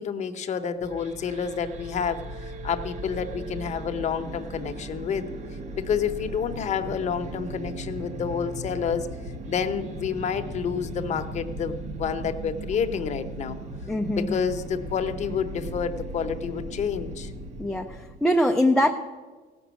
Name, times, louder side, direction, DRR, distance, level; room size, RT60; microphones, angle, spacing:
voice 1, 0.0-2.2 2.6-5.3 5.8-9.1 9.5-13.6 14.2-17.3, left 7 dB, 40° left, 7 dB, 0.8 m, -29 dB
sound 1, 0.8-18.2, right 2 dB, 40° right, 0.9 m, -37 dB
voice 2, 13.9-14.5 17.6-18.9, left 1 dB, ahead, 2 dB, 0.4 m, -23 dB
17.0 x 6.1 x 8.2 m, 1.4 s
cardioid pair, 165°, 18 cm